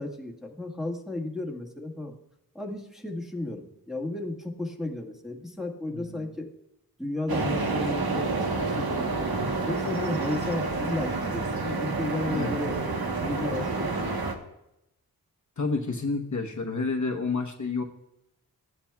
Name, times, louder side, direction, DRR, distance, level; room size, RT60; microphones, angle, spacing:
voice 1, 0.0-2.1 2.5-6.5 7.0-9.3 9.7-14.1, left 2 dB, ahead, -2 dB, 1.6 m, -34 dB
voice 2, 5.9-6.3 12.3-12.5 15.6-17.8, left 4 dB, 50° left, 2 dB, 1.0 m, -29 dB
sound 1, 7.3-14.3, right 3 dB, 75° right, 1.2 m, -29 dB
16.0 x 10.0 x 2.3 m, 0.86 s
wide cardioid pair, 95°, 37 cm